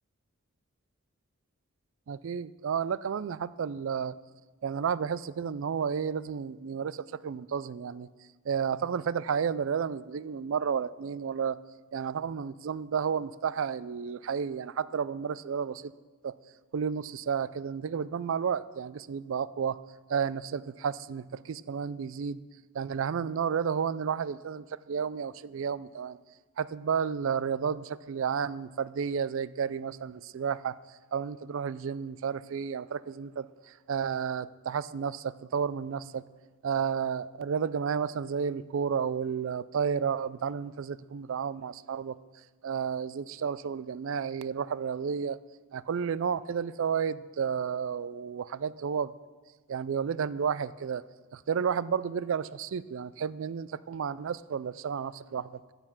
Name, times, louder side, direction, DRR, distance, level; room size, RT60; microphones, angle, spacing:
voice 1, 2.1-4.1 4.6-8.1 8.5-11.6 11.9-15.9 16.2-16.3 16.7-19.8 20.1-22.4 22.7-26.2 26.6-30.8 31.1-36.2 36.6-42.2 42.6-45.4 45.7-49.1 49.7-51.0 51.3-55.6, right 7 dB, 65° right, 18 dB, 0.4 m, -32 dB
14.5 x 6.8 x 6.0 m, 1.3 s
head